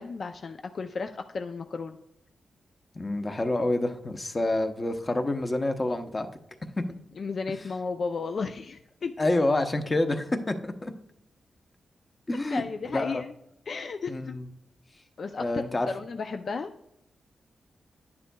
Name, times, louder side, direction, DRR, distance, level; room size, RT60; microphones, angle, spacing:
voice 1, 0.0-2.0 7.2-9.3 12.5-13.3 13.7-14.4 15.2-16.7, left 4 dB, 55° left, 6 dB, 0.4 m, -34 dB
voice 2, 2.9-6.3 9.2-10.9 12.3-12.6 12.9-13.2 14.1-14.4 15.4-15.9, left 2 dB, 25° left, 7 dB, 0.8 m, -27 dB
11.0 x 9.5 x 2.3 m, 0.79 s
wide cardioid pair, 110°, 0 cm